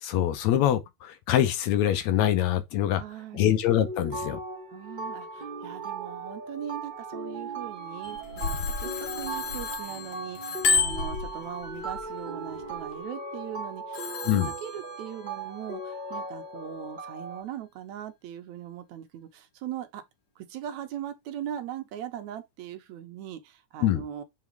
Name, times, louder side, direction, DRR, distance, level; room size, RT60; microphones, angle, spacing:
voice 1, 0.0-3.0 3.3-4.4 14.3-14.5 23.8-24.0, left 11 dB, 75° left, 1.9 m, -24 dB
voice 2, 2.9-3.5 4.7-14.0 14.3-20.0 20.4-24.2, right 10 dB, 75° right, 2.2 m, -40 dB
sound 1, 3.7-17.4, right 3 dB, 50° right, 0.5 m, -38 dB
Bicycle bell, 8.0-10.0 10.4-12.0 12.6-12.9, left 5 dB, 90° left, 1.0 m, -28 dB
Telephone, 8.4-11.7 13.9-15.4, left 7 dB, 55° left, 1.3 m, -41 dB
5.8 x 4.2 x 4.5 m
omnidirectional pair, 3.4 m